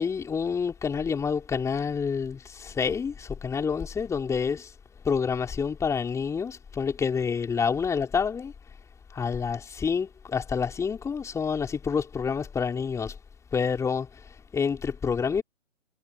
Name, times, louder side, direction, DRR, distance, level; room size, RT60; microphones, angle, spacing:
voice 1, 0.0-4.7 5.1-8.5 9.1-13.1 13.5-14.1 14.5-15.4, left 6 dB, 5° left, 4.1 m, -28 dB
figure-of-eight pair, 135°, 39 cm